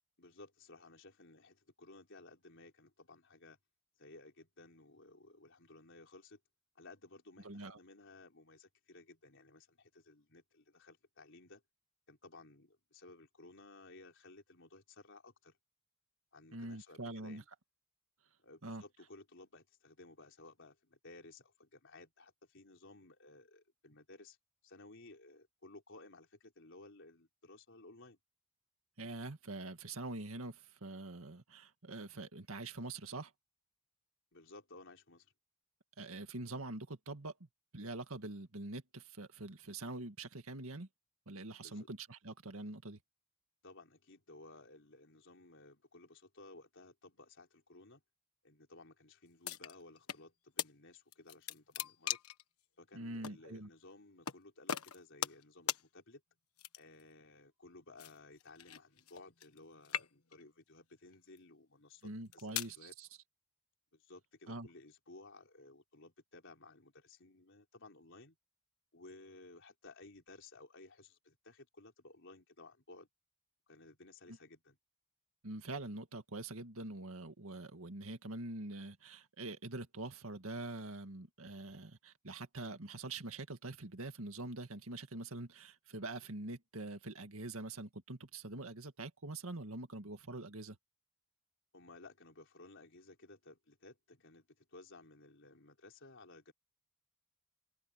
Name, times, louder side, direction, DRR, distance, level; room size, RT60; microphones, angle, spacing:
voice 1, 0.2-3.6 4.0-6.4 6.7-11.6 12.1-15.6 16.3-17.5 18.4-24.4 24.6-28.2 34.3-35.3 41.6-41.9 43.6-48.0 48.4-52.2 52.8-56.2 56.8-62.9 63.9-68.4 68.9-73.1 73.7-74.8 91.7-96.5, left 2 dB, 60° left, 4.4 m, -57 dB
voice 2, 7.4-7.8 16.5-17.4 18.6-18.8 29.0-33.3 36.0-40.9 41.3-43.0 52.9-53.7 62.0-63.1 64.5-64.7 75.4-90.8, right 2 dB, 70° right, 2.1 m, -45 dB
sound 1, 49.4-50.2 50.6-50.7 51.1-52.4 53.2-53.4 54.3-54.4 54.7-55.4 55.7-55.8 56.6-57.0 58.0-59.6 59.8-60.4 61.1-61.4 62.1-62.8, left 10 dB, 85° left, 1.3 m, -40 dB
head